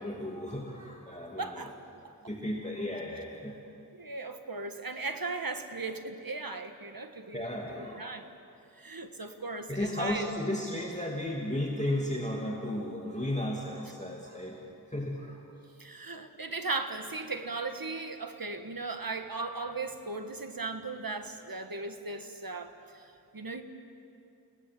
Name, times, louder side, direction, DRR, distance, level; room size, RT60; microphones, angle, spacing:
voice 1, 0.0-1.7 2.3-3.6 7.3-8.1 9.7-14.6 14.9-15.4, left 1 dB, 20° left, -2 dB, 2.8 m, -34 dB
voice 2, 1.4-1.8 2.0-2.3 3.9-7.6 8.0-8.3 8.8-10.3 15.8-23.1 23.3-23.6, right 3 dB, 60° right, 7 dB, 1.7 m, -37 dB
29.5 x 18.0 x 7.9 m, 2.7 s
wide cardioid pair, 50°, 38 cm